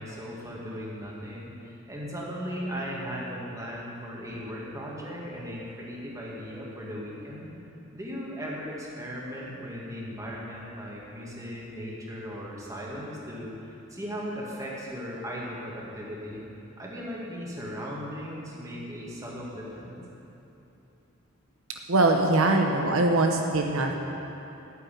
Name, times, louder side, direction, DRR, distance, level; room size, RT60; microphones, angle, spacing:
voice 1, 0.0-7.5 7.9-16.4 16.8-20.0, equal, 15° right, -4 dB, 2.1 m, -37 dB
voice 2, 21.9-23.9, right 2 dB, 75° right, 2 dB, 0.9 m, -22 dB
9.7 x 7.9 x 9.2 m, 2.9 s
head